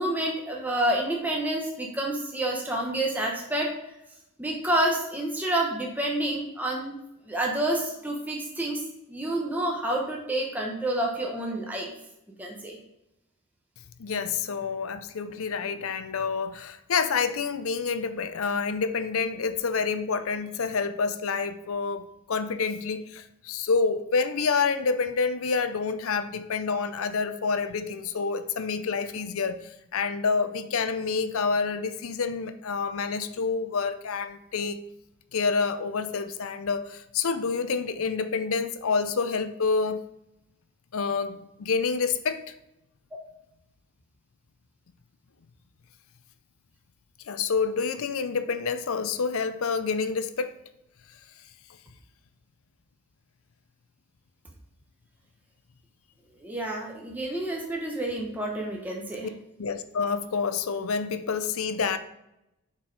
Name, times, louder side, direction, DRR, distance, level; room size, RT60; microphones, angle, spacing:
voice 1, 0.0-3.7 4.4-6.9 7.3-8.8 9.1-11.9 12.4-12.8 56.4-59.3, right 1 dB, 10° right, -1 dB, 0.9 m, -28 dB
voice 2, 14.0-29.6 29.9-34.8 35.3-40.0 40.9-42.4 47.3-50.5 59.2-59.3 59.6-62.0, left 5 dB, 70° left, 11 dB, 0.5 m, -28 dB
6.0 x 4.5 x 4.7 m, 0.88 s
head